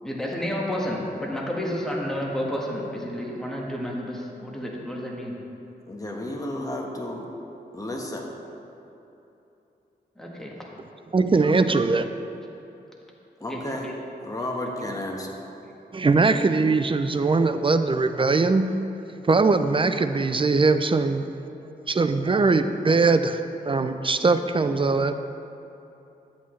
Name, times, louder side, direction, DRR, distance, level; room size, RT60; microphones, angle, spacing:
voice 1, 0.0-5.4 10.2-10.5 13.5-13.9 14.8-14.9, equal, 5° left, -3 dB, 1.5 m, -31 dB
voice 2, 5.9-7.3 7.7-8.3 13.4-13.9 14.2-15.5, left 1 dB, 20° left, 0 dB, 1.3 m, -32 dB
voice 3, 11.1-12.1 15.9-18.7 19.3-21.2 21.9-25.2, right 3 dB, 30° right, 9 dB, 0.4 m, -21 dB
11.0 x 8.2 x 3.2 m, 2.9 s
cardioid pair, 70°, 17 cm